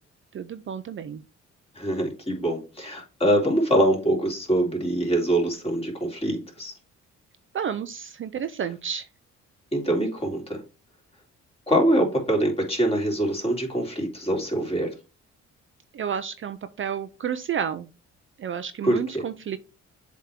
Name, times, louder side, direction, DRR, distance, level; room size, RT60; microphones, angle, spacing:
voice 1, 0.3-1.2 7.5-9.1 15.9-17.9 18.4-19.6, right 8 dB, 45° right, 11 dB, 0.5 m, -31 dB
voice 2, 1.8-6.7 9.7-10.6 11.7-14.9 18.8-19.2, right 1 dB, 20° left, 0 dB, 3.2 m, -24 dB
7.5 x 3.6 x 4.4 m, 0.31 s
cardioid pair, 90°, 30 cm